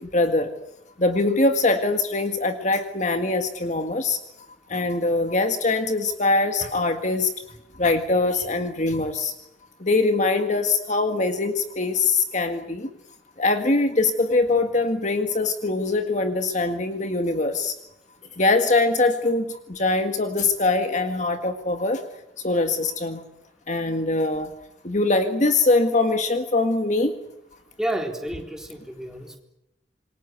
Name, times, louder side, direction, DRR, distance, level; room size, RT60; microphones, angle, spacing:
voice 1, 0.1-0.5 1.0-4.2 4.7-7.3 7.8-9.3 9.8-12.9 13.4-17.7 18.4-19.4 19.7-22.0 22.4-23.2 23.7-24.5 24.8-27.1, left 3 dB, 40° left, 6 dB, 1.7 m, -22 dB
voice 2, 27.8-29.4, right 1 dB, 5° right, 2 dB, 3.8 m, -30 dB
27.5 x 23.0 x 8.2 m, 0.85 s
head